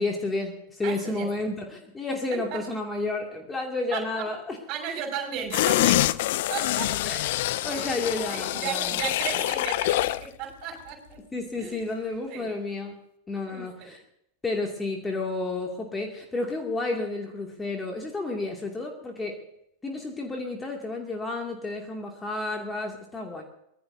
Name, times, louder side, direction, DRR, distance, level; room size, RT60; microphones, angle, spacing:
voice 1, 0.0-4.6 7.0-7.3 7.6-9.0 11.3-13.0 13.3-14.0 14.4-19.4 19.8-23.4, left 2 dB, 10° left, 1 dB, 2.5 m, -31 dB
voice 2, 0.8-1.3 2.3-2.6 3.9-4.2 4.7-6.1 6.5-6.9 7.7-11.2 11.6-11.8 12.3-12.5 13.5-13.9, right 8 dB, 40° right, 2 dB, 6.1 m, -35 dB
sound 1, 5.5-10.3 10.6-10.7, left 16 dB, 50° left, 0.5 m, -25 dB
24.0 x 20.0 x 2.8 m, 0.78 s
figure-of-eight pair, 90°, 0 cm